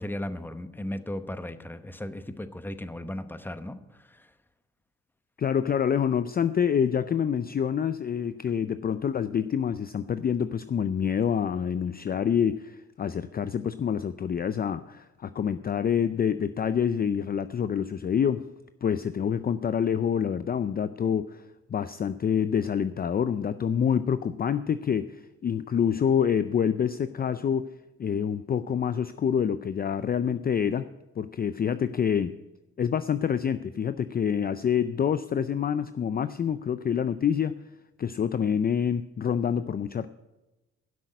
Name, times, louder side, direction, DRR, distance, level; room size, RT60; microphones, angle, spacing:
voice 1, 0.0-4.3, left 1 dB, 5° left, 11 dB, 0.9 m, -36 dB
voice 2, 5.4-18.5 18.8-21.4 21.7-27.7 28.0-30.9 31.2-32.3 32.8-37.5 38.0-40.1, left 8 dB, 30° left, 13 dB, 0.4 m, -27 dB
12.0 x 6.2 x 9.0 m, 1.0 s
cardioid pair, 90°, 30 cm